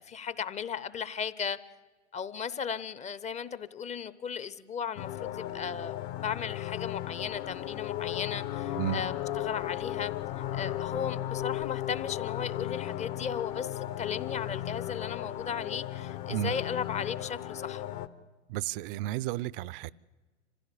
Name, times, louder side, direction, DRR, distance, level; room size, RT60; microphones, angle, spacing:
voice 1, 0.0-1.6 2.1-10.1 10.5-17.9, left 7 dB, 20° left, 0.8 m, -36 dB
sound 1, 5.0-18.1, left 13 dB, 50° left, 1.2 m, -35 dB
voice 2, 18.5-19.9, right 14 dB, 50° right, 0.6 m, -32 dB
26.0 x 16.0 x 8.4 m
hypercardioid pair, 105°, 36 cm